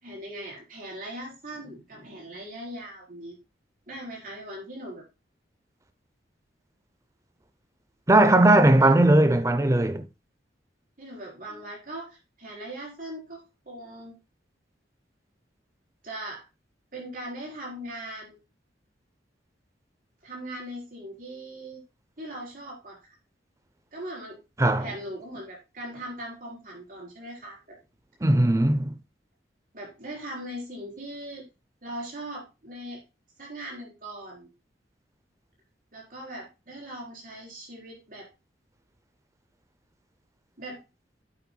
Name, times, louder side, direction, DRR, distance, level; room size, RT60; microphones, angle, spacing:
voice 1, 0.0-3.4 3.9-5.0 8.8-9.0 11.0-14.2 16.0-16.4 16.9-18.4 20.2-21.8 22.2-23.1 23.9-24.4 24.8-27.8 29.7-31.5 31.8-33.0 33.4-34.5 35.9-38.3 40.6-40.8, right 1 dB, 50° right, 4.5 m, -40 dB
voice 2, 8.1-10.1 24.6-24.9 28.2-28.9, right 1 dB, 15° right, 0.6 m, -18 dB
9.3 x 8.7 x 2.3 m
head